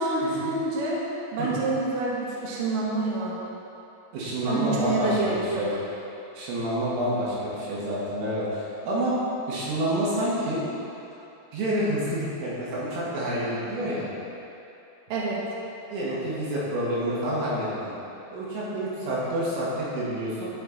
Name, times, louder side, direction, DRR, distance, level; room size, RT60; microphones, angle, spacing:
voice 1, 0.0-3.5 4.5-5.6 15.1-15.4, right 3 dB, 70° right, -5 dB, 2.2 m, -27 dB
voice 2, 4.1-5.7 6.3-9.1 9.5-10.6 11.5-14.1 15.9-17.9 18.3-20.5, equal, 85° right, -8 dB, 4.6 m, -28 dB
12.5 x 5.7 x 4.3 m, 2.9 s
omnidirectional pair, 5.7 m